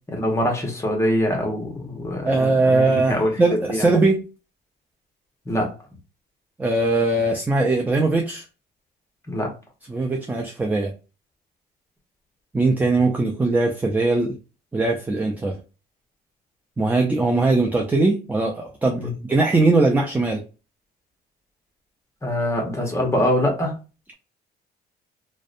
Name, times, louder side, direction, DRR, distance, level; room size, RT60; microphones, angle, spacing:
voice 1, 0.1-3.3 3.7-3.9 5.5-5.8 9.3-9.5 19.0-19.1 22.2-23.8, left 1 dB, 15° left, 1 dB, 0.9 m, -24 dB
voice 2, 2.2-4.3 6.6-8.5 9.9-10.9 12.5-14.4 14.7-15.6 16.8-20.4, right 2 dB, 10° right, 2 dB, 0.3 m, -20 dB
2.6 x 2.1 x 2.4 m, 0.32 s
cardioid pair, 110°, 17 cm